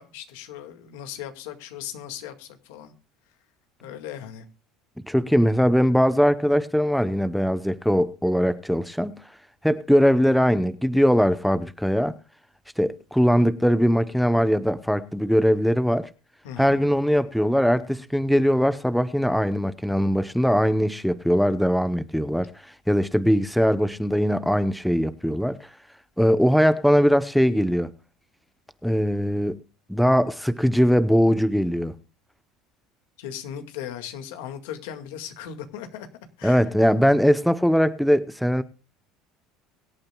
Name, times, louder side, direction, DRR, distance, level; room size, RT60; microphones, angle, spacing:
voice 1, 0.0-2.9 3.8-4.5 16.4-16.8 33.2-36.1 36.4-36.6, left 9 dB, 85° left, 7 dB, 2.0 m, -37 dB
voice 2, 5.1-9.1 9.6-12.1 12.8-16.1 16.6-22.5 22.9-25.6 26.2-27.9 28.8-29.6 29.9-31.9 36.4-38.6, equal, ahead, 13 dB, 0.8 m, -21 dB
23.5 x 8.8 x 2.3 m, 0.32 s
supercardioid pair, 120°, 0 cm